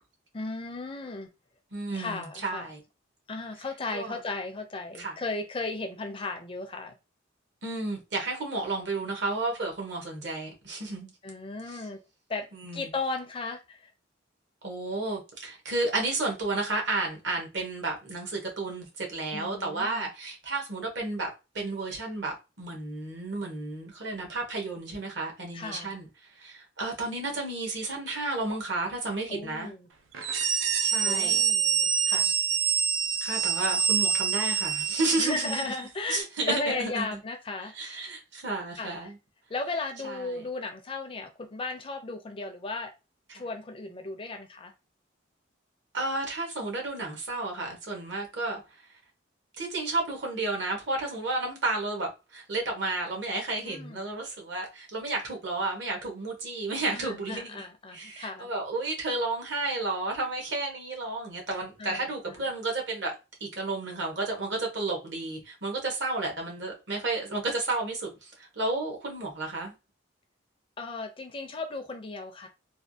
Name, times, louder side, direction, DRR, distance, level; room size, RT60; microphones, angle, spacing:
voice 1, 0.3-1.3 1.9-2.7 3.3-7.0 11.2-12.0 12.3-12.5 12.7-13.9 19.3-20.1 25.5-25.9 29.3-29.9 31.0-32.3 35.2-38.1 38.8-39.1 39.5-42.9 43.3-44.7 53.6-54.1 56.9-58.5 61.8-62.4 70.8-72.5, left 3 dB, 25° left, 0.4 m, -36 dB
voice 2, 1.7-2.8 3.9-4.2 5.0-5.1 7.6-11.1 11.7-11.8 12.5-12.9 14.6-21.3 21.5-26.1 26.3-29.7 30.8-31.3 33.2-35.6 36.1-37.2 37.7-39.2 40.0-40.4 45.9-48.6 49.6-57.7 57.9-63.1 63.4-69.7, right 2 dB, 60° right, 1.2 m, -32 dB
sound 1, 30.1-35.8, right 7 dB, 80° right, 0.5 m, -26 dB
3.4 x 2.3 x 2.6 m
head